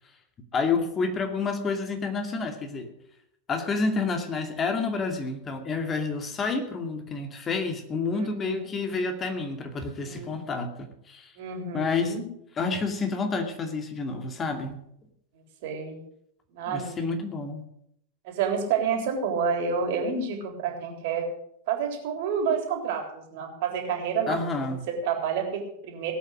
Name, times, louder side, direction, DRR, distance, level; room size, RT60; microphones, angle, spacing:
voice 1, 0.5-2.9 3.5-11.3 11.7-12.2 12.6-14.8 16.7-17.7 24.3-24.9, left 4 dB, 25° left, 5 dB, 2.4 m, -29 dB
voice 2, 8.1-8.6 10.0-10.4 11.4-12.2 15.6-16.0 16.5-17.1 18.2-21.3 21.7-24.4 24.9-26.1, right 6 dB, 50° right, 3 dB, 3.6 m, -29 dB
18.0 x 8.5 x 6.4 m, 0.75 s
figure-of-eight pair, 90°, 0 cm